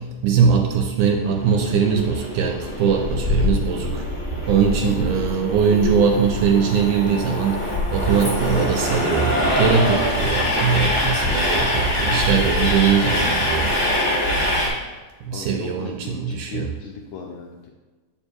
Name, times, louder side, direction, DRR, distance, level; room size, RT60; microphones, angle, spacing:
voice 1, 0.0-4.1 4.5-13.7 15.3-16.7, right 6 dB, 80° right, 3 dB, 1.9 m, -21 dB
Train, 1.2-14.7, left 1 dB, 50° left, 0.3 m, -23 dB
voice 2, 15.3-17.7, left 5 dB, 80° left, 0 dB, 1.8 m, -37 dB
7.0 x 7.0 x 2.4 m, 1.3 s
omnidirectional pair, 3.9 m